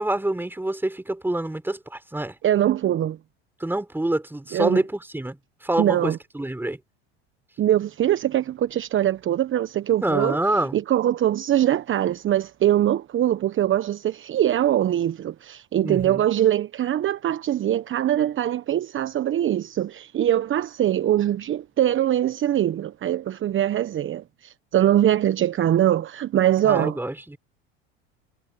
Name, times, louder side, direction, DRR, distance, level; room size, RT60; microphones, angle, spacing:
voice 1, 0.0-2.4 3.6-6.8 10.0-10.8 15.8-16.3 26.6-27.4, right 1 dB, 5° right, 5.2 m, -26 dB
voice 2, 2.4-3.2 4.5-4.8 5.8-6.2 7.6-10.4 10.7-27.0, right 11 dB, 35° right, 1.2 m, -22 dB
hypercardioid pair, 80°, 33 cm